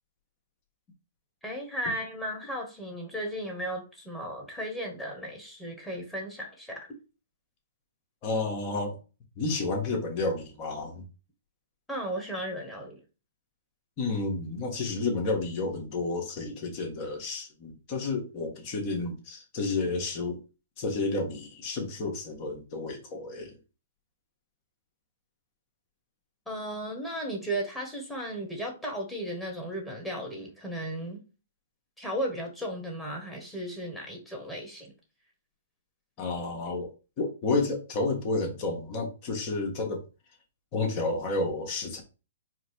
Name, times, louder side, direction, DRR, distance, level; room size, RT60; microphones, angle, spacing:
voice 1, 1.4-6.9 11.9-13.0 26.5-31.2 32.0-34.9, right 1 dB, 5° left, 1.5 m, -35 dB
voice 2, 8.2-9.0 9.3-11.0 14.0-20.4 20.8-23.5 36.2-36.9 37.2-40.0 40.7-42.0, left 3 dB, 40° left, 1.5 m, -31 dB
4.6 x 2.3 x 4.5 m
hypercardioid pair, 125°, 0 cm